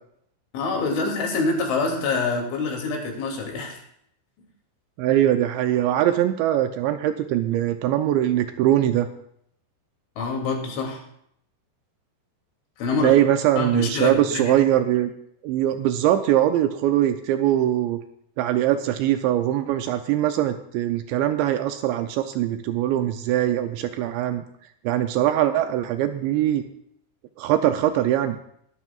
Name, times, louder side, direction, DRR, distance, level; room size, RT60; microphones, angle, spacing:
voice 1, 0.5-3.8 10.2-11.0 12.8-13.2 13.6-14.6, left 3 dB, 75° left, 0 dB, 5.0 m, -26 dB
voice 2, 5.0-9.1 13.0-15.1 15.4-18.0 18.4-24.5 24.8-26.6 27.4-28.4, right 12 dB, 80° right, 8 dB, 2.7 m, -22 dB
20.5 x 13.0 x 2.4 m, 0.69 s
omnidirectional pair, 5.5 m